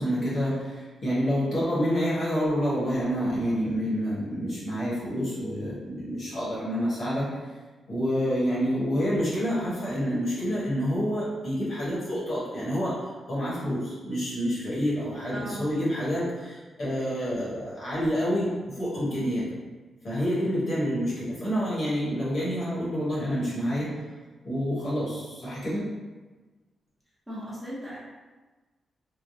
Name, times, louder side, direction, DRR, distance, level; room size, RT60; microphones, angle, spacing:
voice 1, 0.0-7.2 7.9-19.5 20.0-24.0 24.4-25.8, equal, 50° left, -7 dB, 1.2 m, -28 dB
voice 2, 15.3-15.8 27.3-28.0, right 1 dB, 5° right, -9 dB, 0.7 m, -37 dB
3.2 x 2.2 x 2.7 m, 1.3 s
wide cardioid pair, 150°, 0 cm